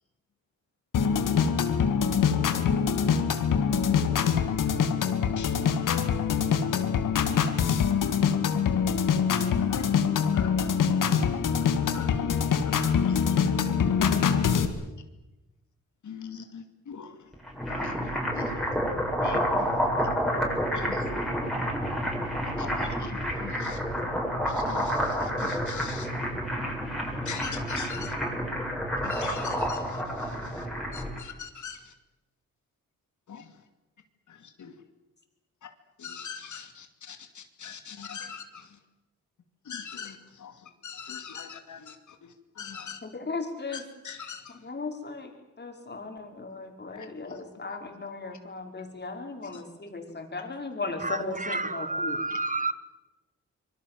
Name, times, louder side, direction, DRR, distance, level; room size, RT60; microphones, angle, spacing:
sound 1, 0.9-14.7, left 7 dB, 85° left, 2.3 m, -24 dB
voice 1, 10.3-10.7 11.9-12.1 12.6-13.4 14.5-14.9 16.0-17.2 17.7-18.7 19.2-19.9 20.7-21.1 22.4-23.8 24.5-26.1 27.2-28.2 29.0-30.7 30.9-31.9 33.3-33.5 34.3-34.7 35.6-35.7 36.0-38.8 39.6-42.2 42.6-43.0 43.7-44.6 46.9-47.4 47.7-47.8 49.4-49.6, left 7 dB, 70° left, 2.6 m, -42 dB
sound 2, 17.3-31.2, equal, ahead, 7.7 m, -29 dB
voice 2, 43.0-43.8 44.6-45.3 45.6-52.2, left 3 dB, 35° left, 5.4 m, -36 dB
voice 3, 51.0-52.7, right 3 dB, 25° right, 1.0 m, -30 dB
25.5 x 23.0 x 7.8 m
cardioid pair, 85°, 31 cm